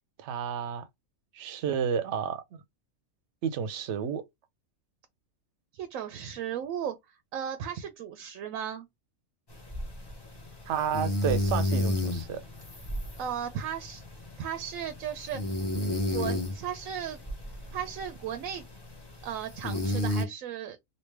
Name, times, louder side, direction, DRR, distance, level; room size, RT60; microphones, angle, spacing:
voice 1, 0.2-0.8 1.3-2.6 3.4-4.2 10.7-12.4, right 7 dB, 65° right, 0.8 m, -31 dB
voice 2, 5.7-6.9 7.3-8.9 13.2-14.0 14.4-15.4 16.1-17.2 17.7-18.6 19.2-20.8, right 9 dB, 90° right, 1.0 m, -35 dB
sound 1, 9.5-20.2, left 1 dB, 20° left, 0.8 m, -33 dB
3.1 x 2.7 x 3.2 m
omnidirectional pair, 1.4 m